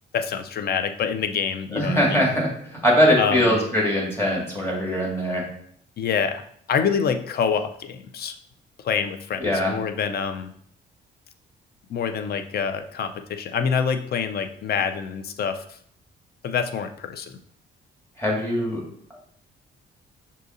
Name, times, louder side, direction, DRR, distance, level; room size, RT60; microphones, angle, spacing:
voice 1, 0.1-2.3 3.2-3.6 6.0-6.4 6.7-8.3 8.8-10.5 11.9-15.8 16.4-17.4, left 6 dB, 50° left, 8 dB, 0.5 m, -26 dB
voice 2, 1.7-2.5 2.8-5.4 9.4-9.7 18.2-18.8, equal, 10° left, -3 dB, 1.7 m, -21 dB
6.1 x 2.8 x 2.6 m, 0.63 s
cardioid pair, 90°, 20 cm